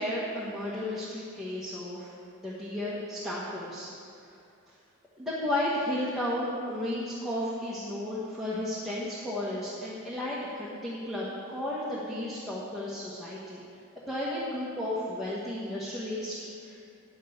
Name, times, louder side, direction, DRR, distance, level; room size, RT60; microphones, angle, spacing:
voice 1, 0.0-2.1 2.4-3.9 4.2-4.3 5.2-13.6 14.1-16.4 16.6-16.8, left 1 dB, ahead, -9 dB, 1.4 m, -33 dB
9.3 x 6.5 x 8.0 m, 2.5 s
head